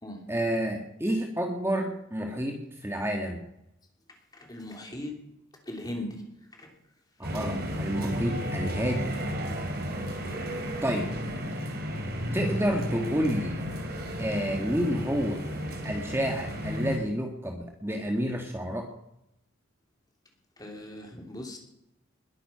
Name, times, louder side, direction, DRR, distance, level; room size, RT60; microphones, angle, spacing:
voice 1, 0.3-3.4 7.2-9.1 10.8-11.1 12.3-13.6 14.2-15.4 15.8-18.9, equal, 10° right, 2 dB, 1.7 m, -29 dB
voice 2, 4.1-5.1 5.6-6.2 6.5-6.7 10.2-10.5 20.6-21.6, left 1 dB, 20° left, 2 dB, 3.2 m, -39 dB
sound 1, 7.2-17.0, equal, 50° right, 3.2 m, -33 dB
21.0 x 10.0 x 5.7 m, 0.83 s
head